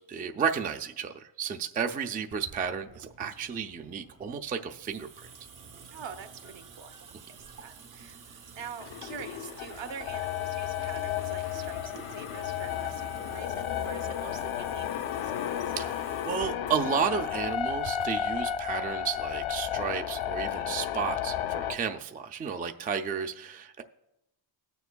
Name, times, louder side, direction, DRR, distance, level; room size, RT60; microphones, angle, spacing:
voice 1, 0.0-5.3 15.8-23.8, right 7 dB, 20° right, 6 dB, 0.3 m, -32 dB
Water tap faucet / Sink (filling or washing) / Drip, 2.3-18.3, right 5 dB, 40° right, 0.7 m, -50 dB
voice 2, 5.9-8.2 8.5-14.9 15.1-15.7, right 7 dB, 65° right, 6 dB, 1.0 m, -45 dB
sound 1, 8.8-21.7, left 10 dB, 75° left, 0.6 m, -33 dB
19.0 x 6.9 x 2.2 m, 0.87 s
cardioid pair, 105°, 49 cm